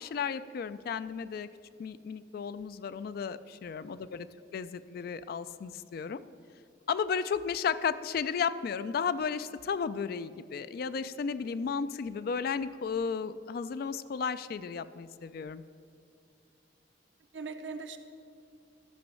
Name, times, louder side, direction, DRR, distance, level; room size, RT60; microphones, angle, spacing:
voice 1, 0.0-1.5 1.8-4.3 4.5-6.2 6.9-15.6, left 6 dB, 55° left, 14 dB, 0.3 m, -34 dB
voice 2, 3.7-4.1 11.4-11.6 17.3-18.0, right 4 dB, 85° right, 7 dB, 0.7 m, -42 dB
11.5 x 5.2 x 6.2 m, 2.4 s
head